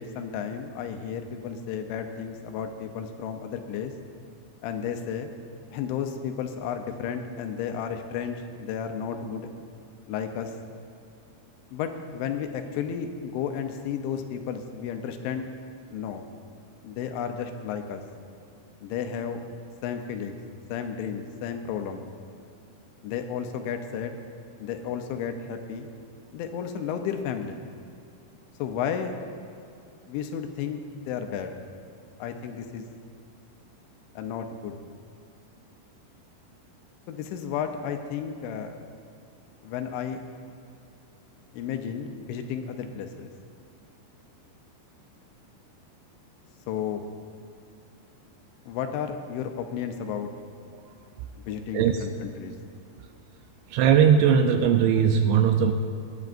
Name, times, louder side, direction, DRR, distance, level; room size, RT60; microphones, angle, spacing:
voice 1, 0.0-3.9 4.6-5.3 5.7-9.5 10.1-10.5 11.7-15.5 15.9-16.2 16.8-18.0 18.8-19.4 19.8-20.4 20.7-22.0 23.0-24.2 24.6-25.9 26.3-27.6 28.6-29.1 30.1-31.5 32.2-32.8 34.2-34.8 37.1-38.8 39.6-40.2 41.5-43.3 46.7-47.0 48.7-50.3 51.4-52.5, left 7 dB, 80° left, 6 dB, 3.0 m, -33 dB
voice 2, 53.7-55.7, right 8 dB, 85° right, 6 dB, 2.7 m, -19 dB
21.5 x 11.0 x 2.5 m, 2.5 s
omnidirectional pair, 5.5 m